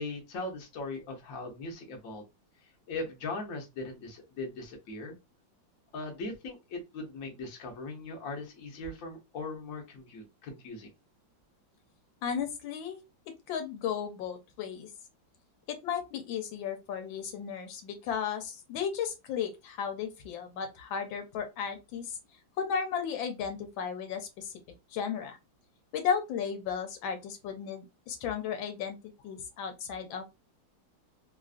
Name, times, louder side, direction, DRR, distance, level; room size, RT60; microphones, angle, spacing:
voice 1, 0.0-2.2 2.9-5.2 5.9-10.9, left 2 dB, 55° left, 1.1 m, -39 dB
voice 2, 12.2-13.0 13.5-14.9 15.7-22.2 22.6-24.5 24.9-25.4 25.9-29.0 29.2-30.3, left 7 dB, 85° left, 1.4 m, -34 dB
3.3 x 2.4 x 2.4 m
omnidirectional pair, 2.1 m